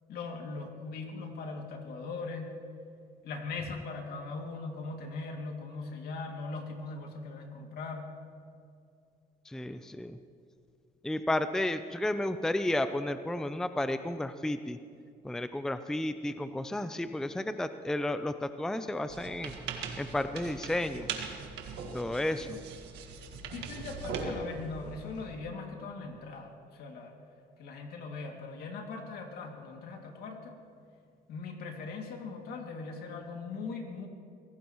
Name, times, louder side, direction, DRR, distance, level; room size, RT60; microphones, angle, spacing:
voice 1, 0.1-2.5 3.2-8.1 22.5-22.6 23.5-27.1 27.6-30.6 31.3-34.1, left 4 dB, 65° left, 2 dB, 2.5 m, -40 dB
voice 2, 9.5-10.2 11.0-14.8 15.2-19.5 20.0-21.1 21.9-22.6, left 1 dB, 5° left, 10 dB, 0.5 m, -32 dB
sound 1, 19.1-25.4, right 5 dB, 80° right, 1.8 m, -40 dB
24.0 x 17.0 x 3.1 m, 2.4 s
cardioid pair, 110°, 17 cm